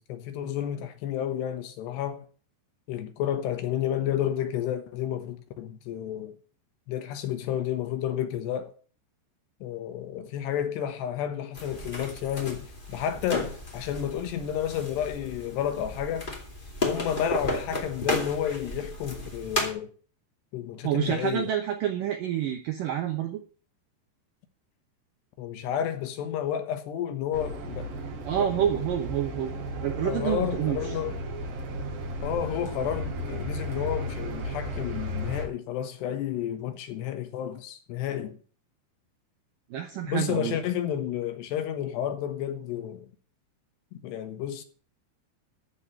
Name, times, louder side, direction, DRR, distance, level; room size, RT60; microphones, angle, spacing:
voice 1, 0.0-2.3 2.9-6.4 6.9-8.7 9.6-16.3 16.8-19.9 20.5-21.5 25.4-28.0 28.4-28.7 30.0-31.2 32.2-38.4 40.1-43.1 44.0-44.6, left 10 dB, 75° left, 3.1 m, -31 dB
sound 1, 11.5-19.7, left 1 dB, 20° left, 1.3 m, -34 dB
voice 2, 20.8-23.4 28.3-31.0 39.7-40.6, right 10 dB, 75° right, 2.0 m, -28 dB
sound 2, 27.3-35.5, equal, 55° right, 4.1 m, -34 dB
14.0 x 5.0 x 9.0 m
omnidirectional pair, 5.3 m